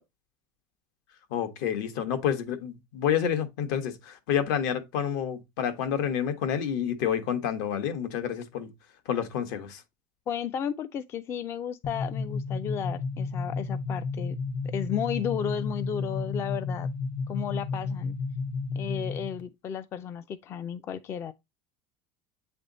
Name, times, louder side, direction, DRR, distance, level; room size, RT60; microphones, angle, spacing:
voice 1, 1.3-8.7 9.0-9.8, left 8 dB, 70° left, 1.3 m, -29 dB
voice 2, 10.3-14.4 14.6-16.9 17.3-18.2 18.8-21.3, left 8 dB, 25° left, 0.3 m, -33 dB
sound 1, 11.8-19.4, left 4 dB, 50° left, 1.4 m, -32 dB
8.2 x 3.4 x 3.8 m
cardioid pair, 165°, 10 cm